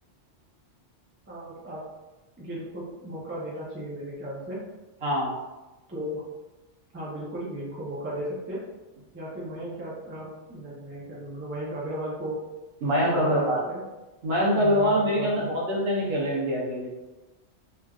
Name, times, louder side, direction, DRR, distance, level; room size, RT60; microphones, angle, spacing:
voice 1, 1.3-1.8 2.4-4.6 5.9-6.2 6.9-8.6 9.1-12.4 13.0-13.8 14.6-15.5, right 1 dB, 15° right, -6 dB, 0.5 m, -35 dB
voice 2, 5.0-5.3 12.8-13.6 14.2-16.9, equal, 60° right, -4 dB, 0.9 m, -24 dB
3.2 x 2.5 x 2.3 m, 1.1 s
omnidirectional pair, 1.2 m